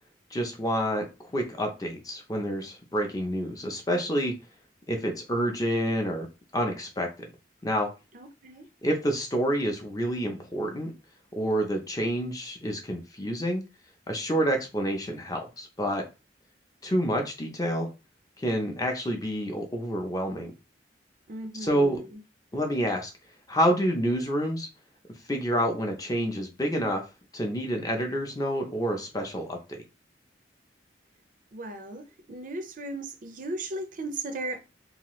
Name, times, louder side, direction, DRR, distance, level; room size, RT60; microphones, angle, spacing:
voice 1, 0.3-4.3 4.9-6.3 6.5-7.1 7.6-7.9 8.8-10.9 11.3-13.6 14.1-16.0 16.8-17.9 18.4-20.5 21.5-22.0 22.5-23.1 23.5-24.7 25.3-27.0 27.3-29.8, equal, 20° left, 0.6 m, -28 dB
voice 2, 8.1-8.7 21.3-22.2 31.5-34.6, right 2 dB, 45° right, 0.5 m, -36 dB
2.8 x 2.4 x 3.0 m
head